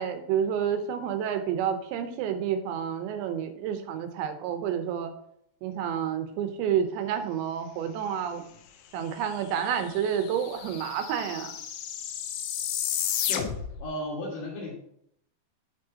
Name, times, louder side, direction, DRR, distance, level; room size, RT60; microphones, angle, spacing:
voice 1, 0.0-5.1 5.6-8.4 8.9-11.5, right 8 dB, 80° right, 7 dB, 3.0 m, -29 dB
sound 1, 9.4-9.5 9.6-13.9, left 9 dB, 85° left, 3.1 m, -32 dB
voice 2, 13.3-14.7, left 1 dB, 55° left, -6 dB, 3.0 m, -35 dB
11.5 x 5.2 x 2.8 m, 0.70 s
omnidirectional pair, 5.3 m